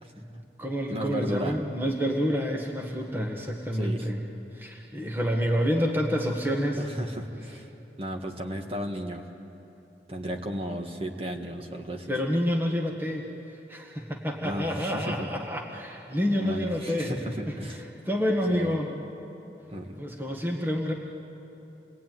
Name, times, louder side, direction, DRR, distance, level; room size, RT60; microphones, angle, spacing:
voice 1, 0.0-0.4 0.9-1.6 3.7-4.1 6.8-7.7 8.0-9.2 10.1-12.1 14.4-15.3 16.4-17.8 18.5-18.7 19.7-20.0, equal, 35° right, 3 dB, 1.8 m, -34 dB
voice 2, 0.6-4.2 4.5-6.8 12.1-13.2 13.7-17.1 17.5-17.6 18.0-18.9 20.0-20.9, equal, 10° right, 1 dB, 1.6 m, -28 dB
28.5 x 20.0 x 9.4 m, 2.9 s
head